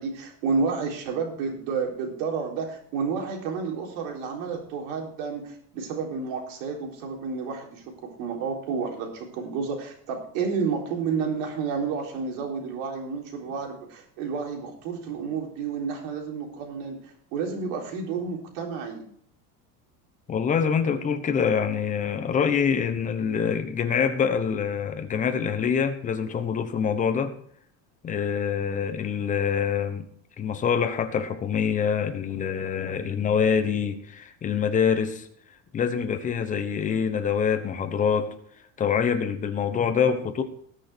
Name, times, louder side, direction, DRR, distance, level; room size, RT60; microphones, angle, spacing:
voice 1, 0.0-7.8 8.2-19.0, right 5 dB, 85° right, 1 dB, 4.0 m, -30 dB
voice 2, 20.3-27.3 28.0-30.1 30.4-35.3 35.7-38.3 38.8-40.4, left 7 dB, 20° left, 8 dB, 1.0 m, -25 dB
19.0 x 6.6 x 4.5 m, 0.64 s
cardioid pair, 175°, 37 cm